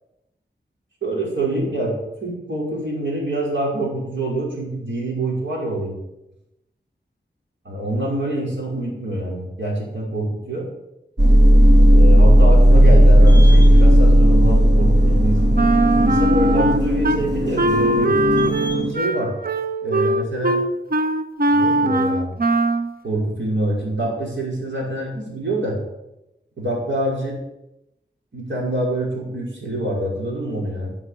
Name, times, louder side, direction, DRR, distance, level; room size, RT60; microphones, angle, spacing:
voice 1, 1.0-6.0 7.7-10.7 11.9-15.5 16.0-18.2 18.9-19.3 19.8-20.6 21.5-22.3 23.0-25.8 26.6-27.3 28.3-30.9, right 1 dB, 85° right, -3 dB, 5.3 m, -25 dB
sound 1, 11.2-18.9, equal, 70° right, 2.7 m, -13 dB
Wind instrument woodwind instrument, 15.5-17.2 17.6-22.9, right 2 dB, 50° right, 0.9 m, -20 dB
12.5 x 7.3 x 8.4 m, 0.90 s
wide cardioid pair, 85°, 19 cm